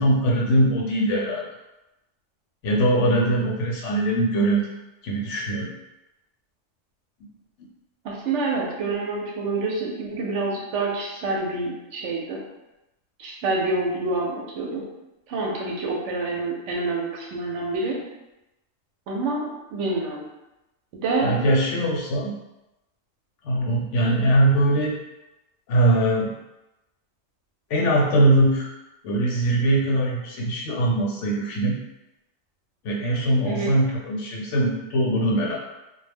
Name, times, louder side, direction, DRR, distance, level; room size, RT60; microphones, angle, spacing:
voice 1, 0.0-1.4 2.6-4.7 5.0-5.7 21.2-22.3 23.4-24.9 25.7-26.3 27.7-28.7 29.0-31.8 32.8-35.6, right 1 dB, 70° left, -2 dB, 0.9 m, -21 dB
voice 2, 8.0-12.4 13.2-14.9 15.3-18.0 19.1-20.3 20.9-21.3 33.4-33.8, right 3 dB, 70° right, -2 dB, 0.8 m, -27 dB
2.3 x 2.1 x 3.3 m, 0.97 s
omnidirectional pair, 1.4 m